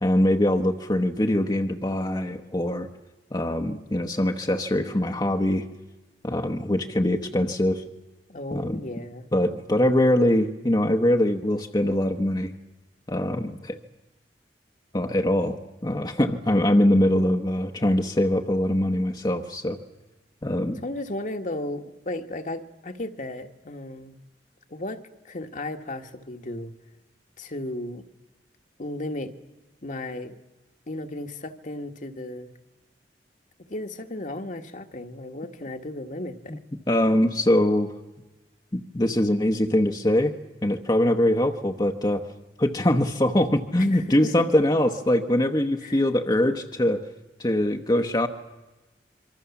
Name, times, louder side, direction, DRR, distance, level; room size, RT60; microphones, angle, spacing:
voice 1, 0.0-2.9 3.3-5.6 6.2-7.8 8.5-8.8 9.3-12.5 13.1-13.8 14.9-15.6 15.8-19.8 20.4-20.8 36.9-37.9 38.7-40.3 40.6-42.2 42.6-47.0 47.4-48.3, left 1 dB, 25° left, 4 dB, 1.0 m, -23 dB
voice 2, 8.3-9.2 20.8-24.1 24.7-26.7 27.4-28.0 28.8-29.3 29.8-30.4 30.9-32.5 33.7-36.6 43.8-44.5 45.8-46.0, left 1 dB, 45° left, 6 dB, 1.5 m, -35 dB
26.5 x 24.0 x 7.1 m, 1.1 s
head